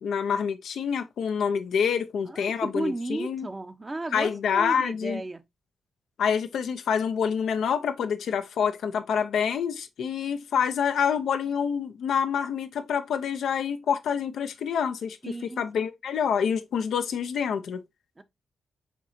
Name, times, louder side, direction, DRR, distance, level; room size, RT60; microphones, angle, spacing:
voice 1, 0.0-3.5 4.1-5.2 6.2-17.8, left 7 dB, 75° left, 0.5 m, -27 dB
voice 2, 2.3-5.4 15.2-15.6 18.2-18.3, right 2 dB, 30° right, 0.8 m, -34 dB
7.2 x 2.8 x 2.6 m
supercardioid pair, 50°, 0 cm